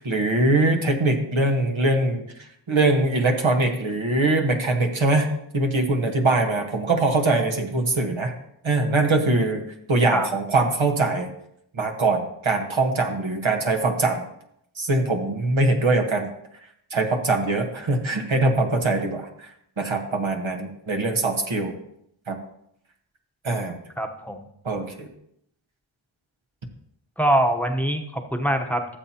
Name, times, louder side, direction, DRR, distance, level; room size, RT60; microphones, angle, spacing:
voice 1, 0.0-2.2 2.7-5.3 5.5-8.3 8.6-9.6 9.9-11.3 11.8-14.2 14.8-16.3 16.9-19.3 19.8-21.7 22.3-22.4 23.4-23.8 24.6-25.1, right 2 dB, 80° right, 3 dB, 1.4 m, -22 dB
voice 2, 24.0-24.5 27.2-29.0, right 1 dB, 5° left, 4 dB, 0.9 m, -23 dB
15.0 x 7.4 x 2.9 m, 0.75 s
wide cardioid pair, 50°, 47 cm